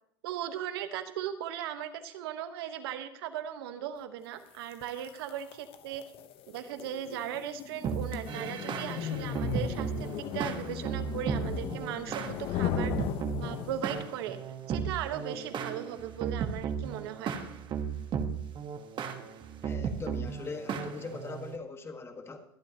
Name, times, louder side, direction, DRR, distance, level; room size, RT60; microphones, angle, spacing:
voice 1, 0.2-6.0 6.5-12.9 13.4-14.4 14.7-17.3, right 10 dB, 75° right, 9 dB, 1.3 m, -38 dB
sound 1, 4.7-14.1, left 9 dB, 45° left, 1.0 m, -37 dB
sound 2, 7.8-21.6, right 7 dB, 40° right, 1.4 m, -35 dB
voice 2, 19.6-22.4, left 4 dB, 20° left, 6 dB, 1.6 m, -41 dB
23.5 x 8.5 x 3.0 m, 0.72 s
supercardioid pair, 110°, 13 cm